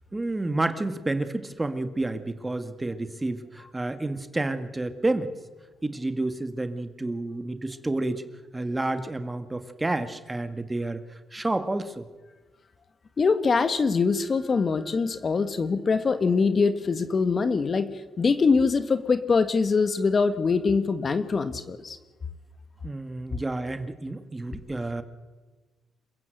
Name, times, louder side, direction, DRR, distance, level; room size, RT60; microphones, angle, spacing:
voice 1, 0.1-5.3 5.8-8.2 8.5-11.0 11.3-12.1 22.8-25.0, right 2 dB, 15° right, 10 dB, 1.9 m, -30 dB
voice 2, 13.2-22.0, left 4 dB, 40° left, 11 dB, 1.6 m, -23 dB
27.5 x 15.5 x 7.9 m, 1.3 s
cardioid pair, 90°, 0 cm